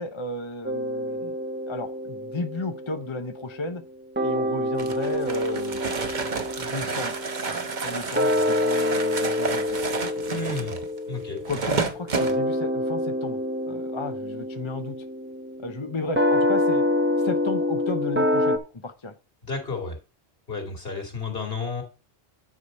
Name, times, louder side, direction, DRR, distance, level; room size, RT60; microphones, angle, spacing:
voice 1, 0.0-1.4 1.7-3.8 4.2-5.8 6.2-9.8 10.1-10.5 11.4-13.4 13.7-15.0 15.6-16.9 17.2-19.1, left 3 dB, 30° left, 0.8 m, -34 dB
sound 1, 0.6-3.9 4.2-18.6, left 1 dB, 10° right, 1.1 m, -27 dB
sound 2, 4.8-12.4, right 4 dB, 45° right, 1.1 m, -30 dB
voice 2, 10.3-10.8 11.1-11.4 19.4-20.0 20.5-21.8, left 3 dB, 60° left, 2.7 m, -32 dB
9.7 x 5.0 x 5.3 m
omnidirectional pair, 1.1 m